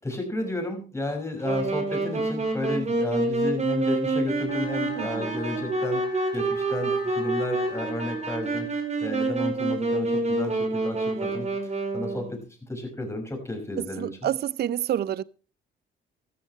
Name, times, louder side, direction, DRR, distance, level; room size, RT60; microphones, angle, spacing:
voice 1, 0.0-6.0 6.3-8.7 9.0-12.4 12.7-14.1, left 1 dB, 15° left, 5.8 m, -32 dB
Wind instrument woodwind instrument, 1.4-12.3, right 2 dB, 35° right, 4.8 m, -27 dB
sound 1, 4.5-9.5, left 3 dB, 50° left, 4.9 m, -41 dB
voice 2, 5.0-5.3 14.0-15.2, right 11 dB, 55° right, 0.5 m, -28 dB
14.0 x 14.0 x 3.2 m
cardioid pair, 90°, 20 cm